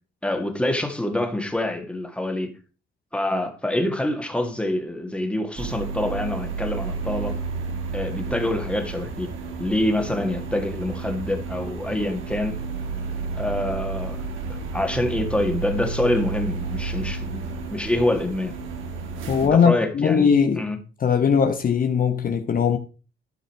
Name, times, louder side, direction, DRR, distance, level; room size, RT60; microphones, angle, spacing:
voice 1, 0.2-2.5 3.1-7.4 7.9-9.3 9.6-12.6 13.4-18.5 19.5-20.8, left 1 dB, 5° left, 2.1 m, -26 dB
sound 1, 5.6-19.5, right 4 dB, 85° right, 2.4 m, -31 dB
voice 2, 19.3-20.6 21.0-22.8, left 6 dB, 45° left, 0.9 m, -19 dB
12.5 x 5.6 x 4.6 m
cardioid pair, 90°, 20 cm